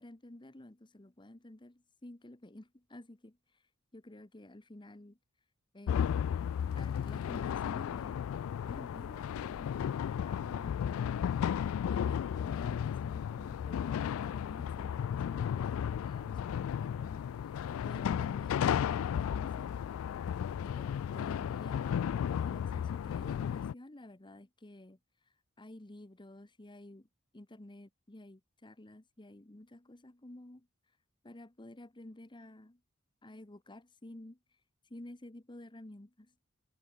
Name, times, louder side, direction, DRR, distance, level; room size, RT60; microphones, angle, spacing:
voice 1, 0.0-3.4 3.9-5.2 5.7-6.3 6.8-8.3 8.6-19.9 20.6-25.0 25.6-27.1 27.3-30.7 31.2-32.8 33.2-34.4 34.9-36.3, left 1 dB, 25° left, 1.1 m, -52 dB
sound 1, 5.9-23.7, left 8 dB, 75° left, 0.3 m, -34 dB
head